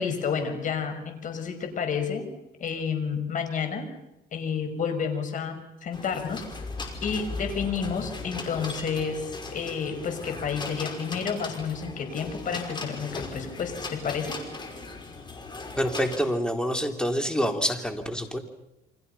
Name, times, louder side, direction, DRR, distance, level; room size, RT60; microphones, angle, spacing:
voice 1, 0.0-2.3 2.6-3.9 4.3-6.4 7.0-14.4, left 6 dB, 50° left, 6 dB, 6.0 m, -30 dB
sound 1, 5.9-16.2, left 3 dB, 25° left, 5.4 m, -38 dB
voice 2, 15.8-18.4, equal, 5° left, 5 dB, 3.5 m, -27 dB
29.5 x 25.0 x 5.7 m, 0.89 s
cardioid pair, 110°, 17 cm